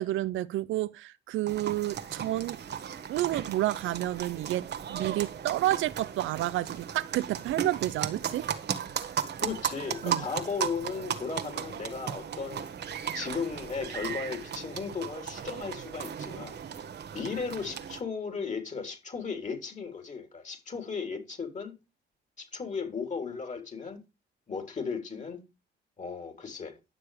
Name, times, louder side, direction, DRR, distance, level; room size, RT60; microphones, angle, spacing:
voice 1, 0.0-2.6 3.1-8.5 10.0-10.3, right 15 dB, 80° right, 0.5 m, -30 dB
sound 1, 1.5-18.0, right 8 dB, 55° right, 1.4 m, -36 dB
voice 2, 9.4-12.7 13.1-16.6 17.1-21.7 22.4-24.0 24.5-25.4 26.0-26.8, left 5 dB, 35° left, 3.6 m, -36 dB
10.5 x 6.8 x 5.0 m
cardioid pair, 90°, 20 cm